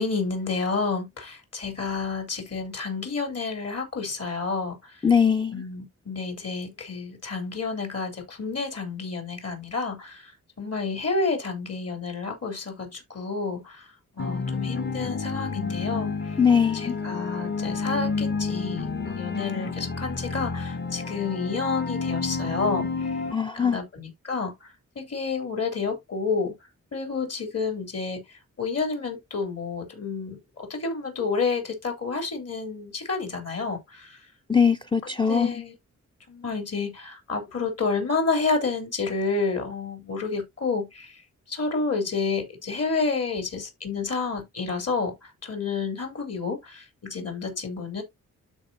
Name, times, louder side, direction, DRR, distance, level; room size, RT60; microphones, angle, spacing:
voice 1, 0.0-4.9 5.5-10.3 10.6-13.8 14.2-16.4 16.7-23.2 23.5-24.7 24.9-26.5 26.9-28.2 28.6-34.2 35.3-35.7 36.3-41.2 41.5-45.2 45.4-48.0, left 4 dB, 55° left, 3.2 m, -30 dB
voice 2, 5.0-5.6 16.4-17.0 23.3-23.8 34.5-35.6, left 6 dB, 15° left, 0.5 m, -21 dB
sound 1, 14.2-23.3, left 4 dB, 35° left, 1.0 m, -30 dB
12.5 x 4.6 x 2.6 m
wide cardioid pair, 140°, 30 cm